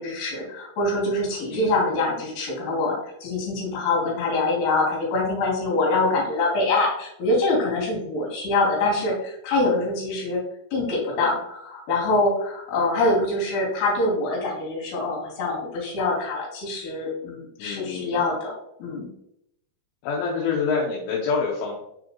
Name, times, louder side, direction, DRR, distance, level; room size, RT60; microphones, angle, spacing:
voice 1, 0.0-10.4 10.7-19.1, left 2 dB, 65° left, -3 dB, 4.4 m, -24 dB
voice 2, 17.6-18.2 20.0-21.7, left 5 dB, 80° left, -3 dB, 3.4 m, -26 dB
6.9 x 4.9 x 3.0 m, 0.77 s
omnidirectional pair, 5.5 m